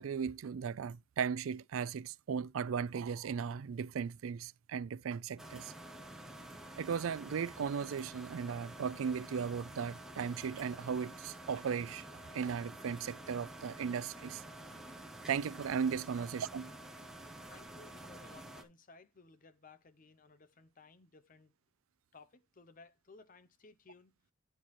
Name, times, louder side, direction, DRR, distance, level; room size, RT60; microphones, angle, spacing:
voice 1, 0.0-5.7 6.8-14.4 15.3-16.7, right 6 dB, 85° right, 0.4 m, -37 dB
sound 1, 5.4-18.6, right 1 dB, 5° right, 1.0 m, -49 dB
voice 2, 17.5-21.5 22.1-24.1, left 4 dB, 40° left, 0.7 m, -59 dB
10.0 x 4.6 x 4.2 m
head